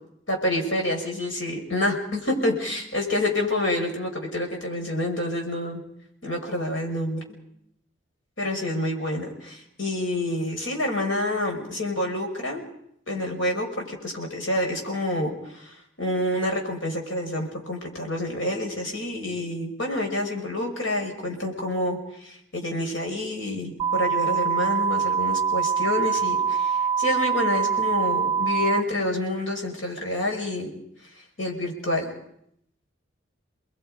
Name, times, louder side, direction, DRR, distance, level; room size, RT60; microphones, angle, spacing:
voice 1, 0.3-5.8 6.2-7.2 8.4-12.6 13.1-30.7 31.4-32.1, left 1 dB, 85° left, 1 dB, 5.8 m, -28 dB
sound 1, 23.8-28.8, right 6 dB, 20° right, 1.0 m, -24 dB
30.0 x 21.0 x 5.1 m, 0.74 s
head